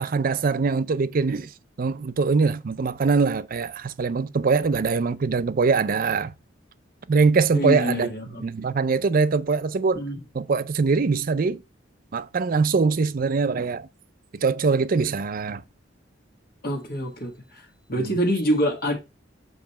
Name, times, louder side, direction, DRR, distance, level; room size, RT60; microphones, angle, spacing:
voice 1, 0.0-1.5 1.8-6.3 7.1-10.0 10.3-11.6 12.1-13.9 14.3-15.6 18.0-18.2, right 4 dB, 50° right, 0.5 m, -23 dB
voice 2, 7.5-8.4 9.9-10.2 16.6-17.6 17.9-19.0, equal, 55° left, 1.6 m, -25 dB
7.1 x 3.2 x 5.5 m
head